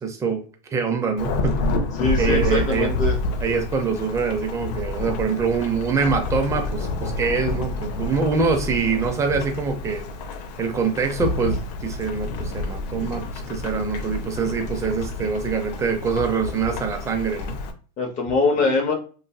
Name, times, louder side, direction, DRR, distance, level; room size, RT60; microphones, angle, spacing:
voice 1, 0.0-0.4 0.7-1.6 2.2-2.9 3.4-10.0 10.6-17.6, right 5 dB, 15° right, 4 dB, 0.5 m, -24 dB
Thunderstorm / Rain, 1.2-17.7, left 2 dB, 75° left, 0.6 m, -29 dB
voice 2, 2.0-3.2 18.0-18.9, left 3 dB, 35° left, 2 dB, 0.6 m, -22 dB
3.1 x 2.6 x 2.2 m, 0.38 s
supercardioid pair, 135°, 21 cm